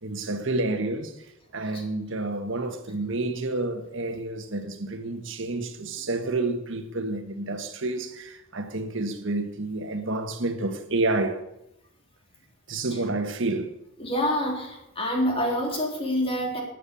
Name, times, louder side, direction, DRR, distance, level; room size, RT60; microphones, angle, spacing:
voice 1, 0.0-1.1 1.5-11.4 12.7-13.7, right 2 dB, 65° right, 1.5 m, -29 dB
voice 2, 14.0-16.6, equal, 30° left, 3.7 m, -26 dB
12.5 x 9.4 x 8.5 m
head